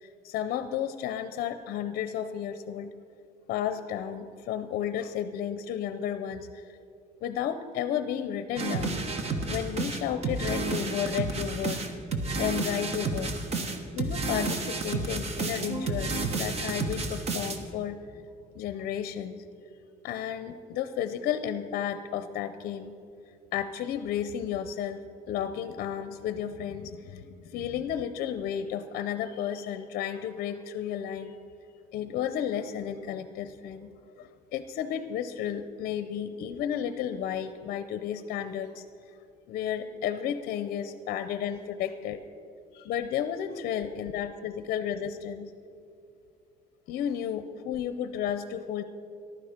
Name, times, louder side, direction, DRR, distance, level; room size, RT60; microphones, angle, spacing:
voice 1, 0.0-2.9 3.5-6.6 7.2-9.0 9.5-11.8 12.3-13.4 13.9-18.0 18.5-19.4 20.0-23.0 23.5-31.4 31.9-33.9 34.2-38.8 39.5-42.2 42.7-45.5 46.9-48.8, left 9 dB, 65° left, 11 dB, 0.6 m, -33 dB
sound 1, 8.6-17.6, right 3 dB, 40° right, 1.1 m, -31 dB
14.5 x 11.5 x 5.1 m, 2.5 s
cardioid pair, 165°, 16 cm